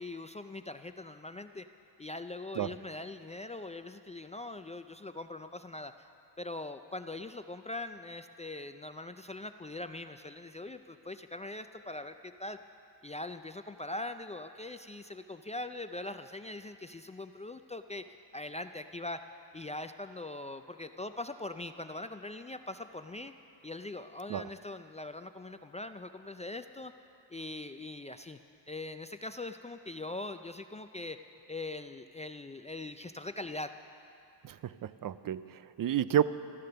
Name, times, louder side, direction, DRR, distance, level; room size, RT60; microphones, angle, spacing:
voice 1, 0.0-1.7 2.0-6.1 6.4-12.6 13.0-18.1 18.3-19.2 19.5-23.3 23.6-26.9 27.3-28.4 28.7-31.2 31.5-33.7, left 2 dB, 20° left, 8 dB, 0.3 m, -42 dB
voice 2, 34.4-36.2, right 10 dB, 50° right, 15 dB, 0.5 m, -31 dB
14.0 x 13.5 x 6.8 m, 2.6 s
cardioid pair, 110°, 42 cm